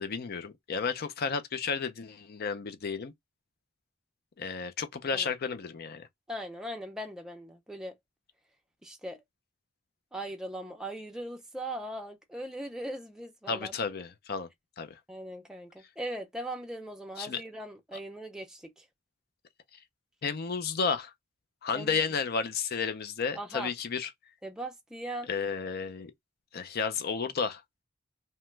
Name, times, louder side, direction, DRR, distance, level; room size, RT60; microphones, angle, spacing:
voice 1, 0.0-3.1 4.4-6.1 13.5-14.5 14.8-14.9 17.2-17.4 20.2-21.1 21.6-24.1 25.3-26.1 26.5-27.6, left 5 dB, 55° left, 0.5 m, -32 dB
voice 2, 6.3-8.0 8.8-9.2 10.1-13.7 15.1-18.9 21.7-22.0 23.3-23.7 24.4-25.3, right 1 dB, 5° right, 0.4 m, -39 dB
2.9 x 2.2 x 3.2 m
head